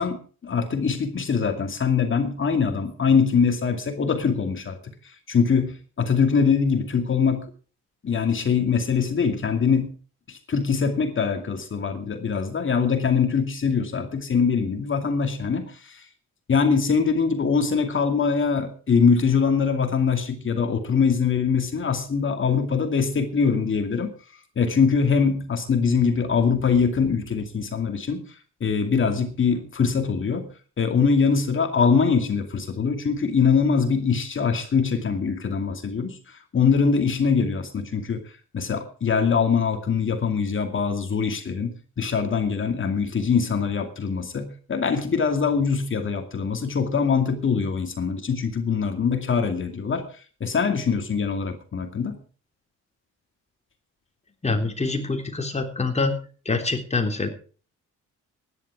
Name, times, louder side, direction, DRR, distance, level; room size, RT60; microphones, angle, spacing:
voice 1, 0.0-4.8 5.3-7.5 8.0-9.9 10.3-16.0 16.5-24.1 24.6-28.2 28.6-30.5 30.8-36.2 36.5-38.2 38.5-50.0 50.4-52.2, left 5 dB, 40° left, 6 dB, 2.5 m, -23 dB
voice 2, 54.4-56.1 56.5-57.3, left 3 dB, 20° left, 4 dB, 3.5 m, -25 dB
16.0 x 11.0 x 4.8 m, 0.39 s
cardioid pair, 90°, 30 cm